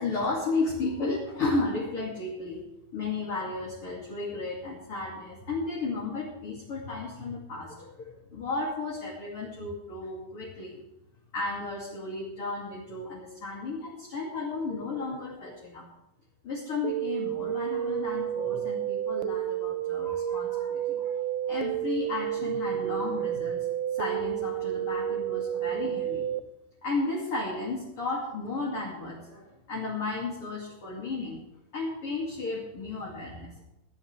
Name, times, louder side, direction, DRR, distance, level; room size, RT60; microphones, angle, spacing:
voice 1, 0.0-2.6 2.9-10.8 11.3-15.8 16.4-26.3 26.8-31.4 31.7-33.5, left 3 dB, 35° left, -4 dB, 3.1 m, -33 dB
sound 1, 16.8-26.4, right 11 dB, 80° right, 2.3 m, -30 dB
21.0 x 13.0 x 3.5 m, 0.90 s
omnidirectional pair, 4.7 m